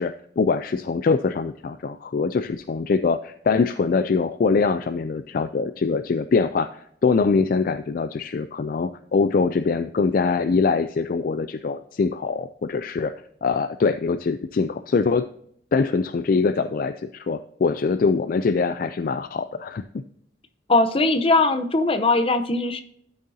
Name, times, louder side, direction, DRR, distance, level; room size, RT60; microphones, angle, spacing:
voice 1, 0.0-13.1 13.4-15.3 15.7-19.8, left 4 dB, 50° left, 10 dB, 0.4 m, -23 dB
voice 2, 20.7-22.8, left 2 dB, 30° left, 8 dB, 0.8 m, -20 dB
12.5 x 6.4 x 2.8 m, 0.69 s
head